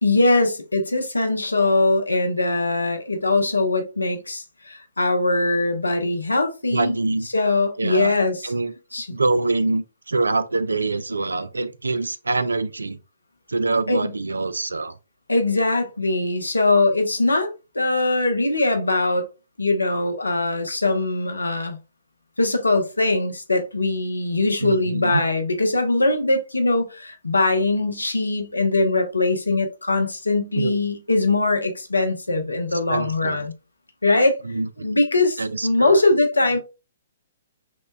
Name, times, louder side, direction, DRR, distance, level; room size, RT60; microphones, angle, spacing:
voice 1, 0.0-6.9 7.3-8.5 8.9-9.1 13.9-14.1 15.3-19.3 19.6-21.8 22.4-33.5 34.0-34.4 34.8-36.6, left 2 dB, 90° left, 0.8 m, -21 dB
voice 2, 6.7-7.3 7.8-8.1 8.4-8.7 9.1-13.0 13.5-14.9 24.6-25.2 30.6-30.7 32.9-33.4 34.4-34.9 35.4-36.0, right 3 dB, 85° right, 0.4 m, -25 dB
5.9 x 2.2 x 2.2 m
figure-of-eight pair, 125°, 0 cm